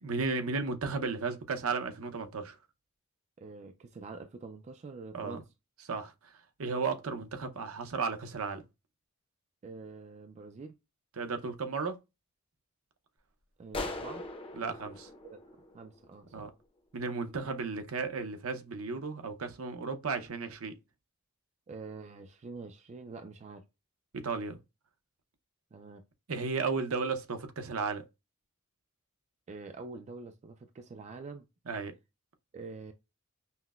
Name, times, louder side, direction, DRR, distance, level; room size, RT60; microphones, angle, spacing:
voice 1, 0.0-2.6 5.1-5.4 5.9-6.1 6.6-8.6 11.2-12.0 14.5-15.1 16.3-16.5 16.9-20.7 24.1-24.6 26.3-28.0 31.7-31.9, right 4 dB, 70° right, 0.7 m, -34 dB
voice 2, 3.4-5.4 9.6-10.8 13.6-14.2 15.2-15.4 15.7-16.5 21.7-23.7 25.7-26.1 29.5-31.5 32.5-32.9, right 4 dB, 30° right, 0.3 m, -46 dB
sound 1, 13.7-16.3, left 2 dB, 25° left, 0.6 m, -41 dB
5.6 x 2.1 x 2.3 m
head